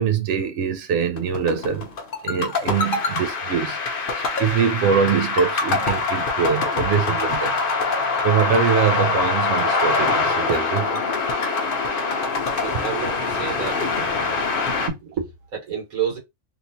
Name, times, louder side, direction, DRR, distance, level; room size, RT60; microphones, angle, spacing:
voice 1, 0.0-1.9 2.2-7.6 7.8-10.9, right 7 dB, 65° right, 0.8 m, -23 dB
sound 1, 1.2-14.9, left 4 dB, 50° left, 0.7 m, -24 dB
voice 2, 12.6-14.4 14.8-16.2, right 7 dB, 80° right, 1.7 m, -30 dB
3.1 x 2.8 x 2.6 m
omnidirectional pair, 1.4 m